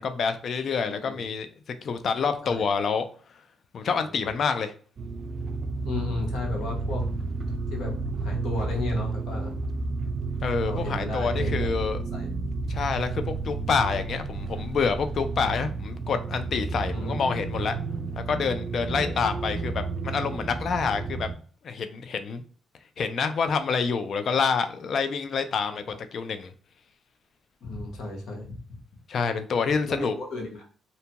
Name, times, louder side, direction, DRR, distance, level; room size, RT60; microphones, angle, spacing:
voice 1, 0.0-1.5 1.8-3.0 3.7-4.7 10.4-12.0 12.7-17.7 18.2-21.3 21.6-22.4 23.0-26.5 29.1-30.1, left 5 dB, 55° left, 9 dB, 0.4 m, -27 dB
voice 2, 0.8-1.2 2.4-2.7 4.0-4.3 5.8-9.5 10.6-11.7 12.1-12.3 16.9-17.3 18.9-19.1 20.9-21.0 25.7-25.8 27.6-28.8 29.9-30.6, left 3 dB, 70° left, 0 dB, 1.0 m, -34 dB
sound 1, 5.0-21.4, right 3 dB, 50° right, 0.3 m, -31 dB
2.7 x 2.2 x 2.8 m, 0.42 s
cardioid pair, 90°, 0 cm